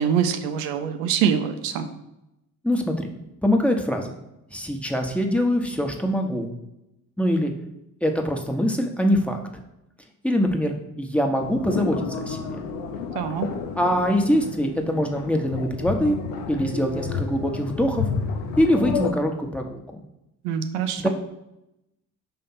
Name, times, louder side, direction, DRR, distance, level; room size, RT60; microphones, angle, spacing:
voice 1, 0.0-1.9 13.2-13.5 20.4-21.1, right 8 dB, 80° right, 8 dB, 0.7 m, -24 dB
voice 2, 2.6-3.1 3.4-4.1 4.5-6.5 7.2-7.5 8.0-9.4 10.2-12.5 13.8-16.2 16.5-18.1 18.6-19.8 21.0-21.1, equal, 5° left, 2 dB, 1.1 m, -23 dB
sound 1, 11.4-19.1, left 5 dB, 70° left, 0.9 m, -30 dB
5.5 x 3.4 x 5.6 m, 0.88 s
hypercardioid pair, 50°, 45 cm